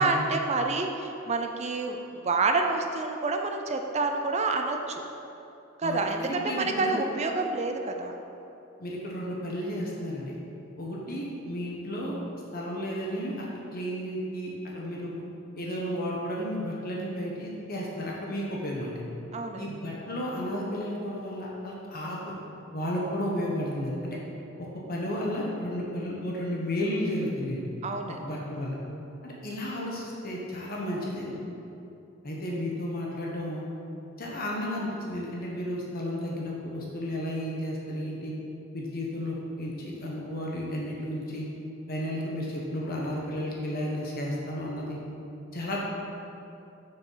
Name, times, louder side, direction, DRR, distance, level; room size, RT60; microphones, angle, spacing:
voice 1, 0.0-5.0 5.8-8.1 19.3-19.7 27.8-28.2, right 3 dB, 35° right, 4 dB, 0.5 m, -28 dB
voice 2, 5.8-7.0 8.8-10.3 10.8-12.1 12.5-13.4 13.7-15.1 15.5-19.0 19.6-22.3 22.7-24.0 24.6-27.7 28.1-28.8 29.2-31.3 32.2-33.7 34.2-38.3 38.7-41.5 41.9-45.0 45.5-45.8, equal, 45° left, -3 dB, 1.2 m, -33 dB
7.0 x 6.5 x 5.7 m, 2.8 s
head